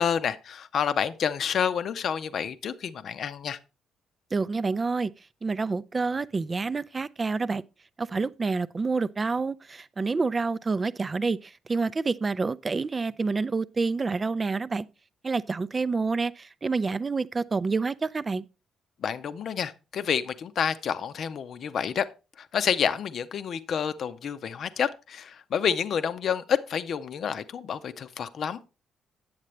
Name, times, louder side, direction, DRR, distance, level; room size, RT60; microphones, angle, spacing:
voice 1, 0.0-3.6 19.0-22.0 22.4-28.6, left 7 dB, 60° left, 0.6 m, -29 dB
voice 2, 4.3-5.1 5.4-7.6 8.0-14.9 15.2-18.5, right 4 dB, 35° right, 0.4 m, -28 dB
8.7 x 7.4 x 3.2 m
hypercardioid pair, 50°, 0 cm